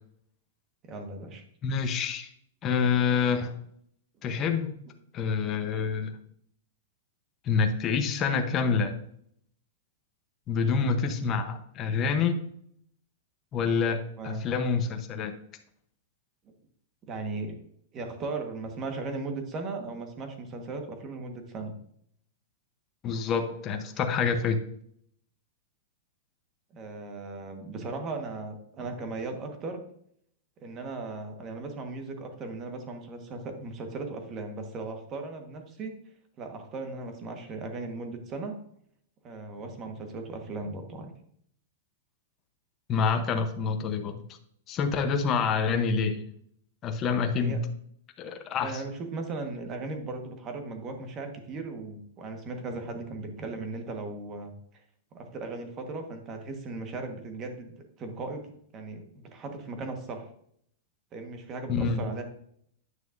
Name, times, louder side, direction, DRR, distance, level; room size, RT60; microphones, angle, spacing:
voice 1, 0.9-1.4 14.2-14.4 17.1-17.6 17.9-21.7 26.7-29.8 30.6-35.9 36.4-38.6 39.2-41.1 47.3-47.6 48.6-54.5 55.1-58.4 58.7-60.3 61.1-62.2, right 3 dB, 25° right, 5 dB, 1.3 m, -37 dB
voice 2, 1.6-2.3 2.6-3.6 4.2-4.7 5.1-6.1 7.4-9.0 10.5-12.4 13.5-15.3 23.0-24.6 42.9-44.2 44.7-46.2 46.8-47.7 48.2-48.8 61.7-62.0, left 5 dB, 25° left, 5 dB, 0.8 m, -27 dB
9.3 x 6.3 x 2.6 m, 0.66 s
supercardioid pair, 155°, 0 cm